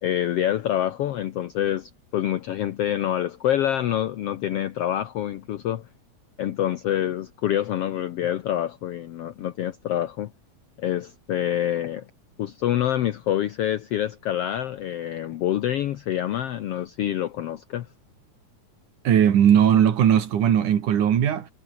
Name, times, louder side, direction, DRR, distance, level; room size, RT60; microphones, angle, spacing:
voice 1, 0.0-5.8 6.4-10.3 10.8-12.1 12.4-17.9, left 11 dB, 65° left, 1.7 m, -26 dB
voice 2, 19.1-21.5, right 9 dB, 85° right, 3.6 m, -18 dB
omnidirectional pair, 3.5 m